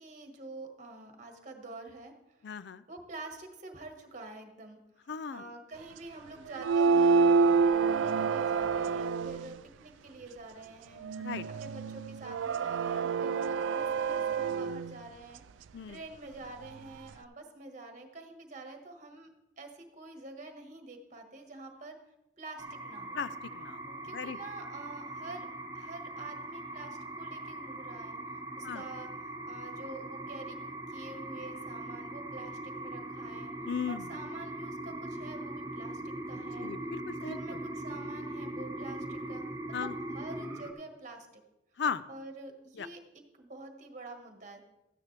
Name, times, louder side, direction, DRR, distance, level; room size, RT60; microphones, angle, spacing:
voice 1, 0.0-2.1 2.9-11.0 11.6-15.4 15.9-19.3 19.6-22.0 22.4-23.2 24.0-25.5 25.7-28.2 28.6-29.1 29.5-30.6 30.9-33.5 33.9-36.7 37.2-39.4 39.8-41.4 42.1-43.0 43.4-44.6, right 2 dB, 45° right, 4 dB, 1.4 m, -47 dB
voice 2, 2.4-2.8 5.1-5.5 11.2-11.5 15.7-16.0 23.1-24.4 28.6-28.8 33.7-34.1 36.6-37.6 39.7-40.0 41.8-42.0 42.7-42.9, left 6 dB, 65° left, 15 dB, 0.4 m, -37 dB
sound 1, 6.5-9.5 11.0-14.9, right 5 dB, 90° right, 0.3 m, -27 dB
sound 2, 22.6-40.7, right 1 dB, 20° right, 1.0 m, -41 dB
13.5 x 9.7 x 3.3 m, 0.92 s
head